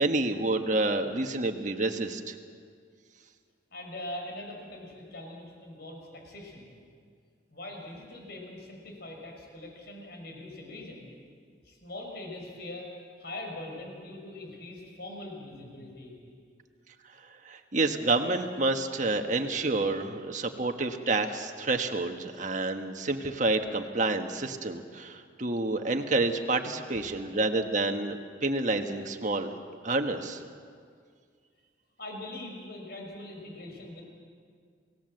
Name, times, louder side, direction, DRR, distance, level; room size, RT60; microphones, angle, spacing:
voice 1, 0.0-2.3 17.4-28.2 28.4-29.6 29.8-30.4, right 2 dB, 40° right, 5 dB, 1.5 m, -28 dB
voice 2, 3.7-6.7 7.5-11.1 11.6-12.9 13.2-16.1 26.9-27.2 32.0-34.0, left 1 dB, 60° left, 1 dB, 6.0 m, -42 dB
29.0 x 18.0 x 7.8 m, 2.1 s
head